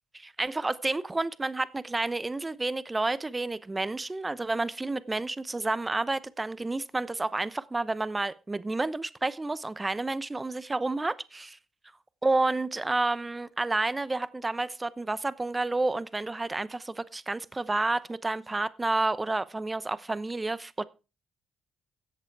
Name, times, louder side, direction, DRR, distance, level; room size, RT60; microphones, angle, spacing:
voice 1, 0.1-11.6 12.2-20.8, right 2 dB, 20° right, 0.8 m, -30 dB
14.0 x 8.1 x 4.7 m
cardioid pair, 90°, 0 cm